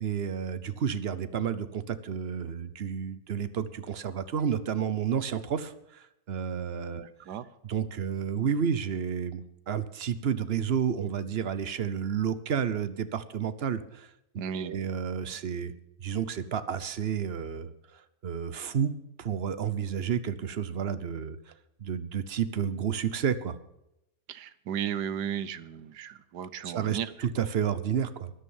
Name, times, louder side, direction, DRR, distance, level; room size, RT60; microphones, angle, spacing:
voice 1, 0.0-7.1 7.6-14.1 14.5-15.7 16.0-18.9 19.2-21.4 21.8-23.6 26.6-28.3, right 8 dB, 45° right, 14 dB, 0.9 m, -31 dB
voice 2, 6.9-7.4 14.4-14.7 24.3-27.1, right 8 dB, 90° right, 15 dB, 1.4 m, -35 dB
13.5 x 10.0 x 7.2 m, 0.83 s
omnidirectional pair, 1.7 m